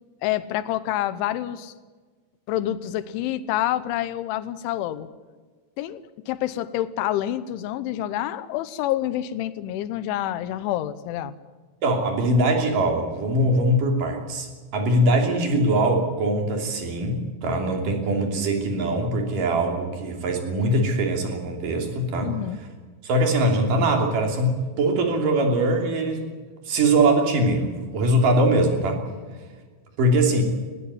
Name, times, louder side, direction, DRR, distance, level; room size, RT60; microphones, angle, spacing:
voice 1, 0.2-1.7 2.5-5.1 5.8-11.3 22.2-22.6, left 13 dB, 90° left, 15 dB, 3.3 m, -27 dB
voice 2, 11.8-22.3 23.0-26.3 26.7-29.0 30.0-30.4, right 1 dB, 50° right, 3 dB, 4.2 m, -22 dB
19.5 x 17.0 x 9.5 m, 1.4 s
omnidirectional pair, 5.3 m